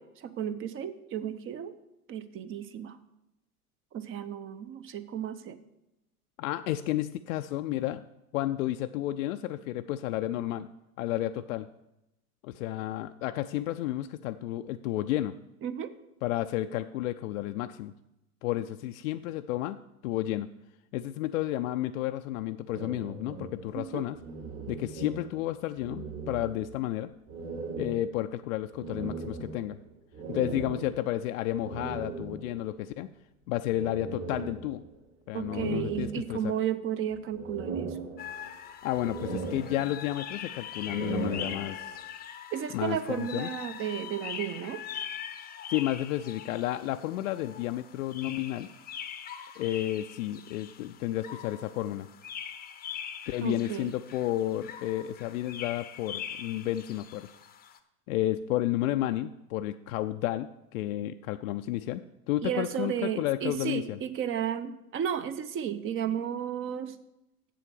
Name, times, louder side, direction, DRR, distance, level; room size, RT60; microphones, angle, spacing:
voice 1, 0.0-1.7 2.1-3.0 3.9-5.6 15.6-15.9 23.7-24.0 35.3-38.0 42.5-44.8 53.4-53.9 62.4-67.0, right 9 dB, 30° right, 12 dB, 0.7 m, -33 dB
voice 2, 6.4-8.1 8.3-10.7 11.0-11.7 12.4-15.3 16.2-17.9 18.4-19.8 20.0-20.5 20.9-24.2 24.7-27.1 27.8-29.8 30.3-33.1 33.5-34.8 35.3-36.5 38.8-42.0 42.7-43.5 45.7-48.7 49.6-52.1 53.3-57.3 58.1-62.0 62.3-64.0, left 14 dB, 60° left, 8 dB, 0.5 m, -31 dB
sound 1, 22.7-25.5 25.7-26.9 27.3-32.7 33.7-35.0 35.4-36.7 37.1-38.6 38.9-40.2 40.7-42.0, right 4 dB, 55° right, 3.7 m, -39 dB
sound 2, 38.2-57.8, left 8 dB, 20° left, 0.7 m, -42 dB
7.6 x 7.6 x 6.7 m, 0.91 s
hypercardioid pair, 90°, 45 cm